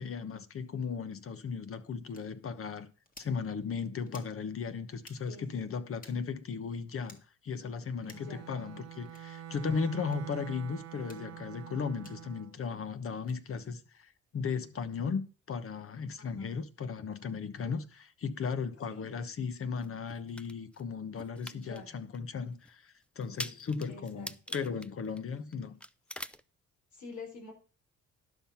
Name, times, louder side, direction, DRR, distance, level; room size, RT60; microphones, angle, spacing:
voice 1, 0.0-2.9 3.2-7.2 7.4-15.2 15.5-25.8, left 5 dB, 45° left, 1.1 m, -36 dB
sound 1, 2.1-2.2 3.1-3.3 4.1-4.3 5.0-5.2 6.0-6.2 7.0-7.2 8.0-8.3 9.1-9.2 10.1-10.2 11.0-11.2 12.0-12.2 13.2-13.4, left 2 dB, 30° left, 2.1 m, -54 dB
voice 2, 5.3-5.8 8.0-8.4 16.2-16.6 17.6-17.7 18.9-19.1 21.5-21.9 23.9-24.7 25.6-25.7 27.0-27.5, left 4 dB, 70° left, 4.2 m, -48 dB
Bowed string instrument, 8.0-12.5, right 10 dB, 60° right, 0.9 m, -45 dB
sound 2, 19.8-20.8 21.2-21.8 22.1-22.2 22.6-22.7 23.2-25.5 25.8-26.4, left 1 dB, 5° left, 0.4 m, -42 dB
11.5 x 5.8 x 5.7 m
cardioid pair, 90°, 30 cm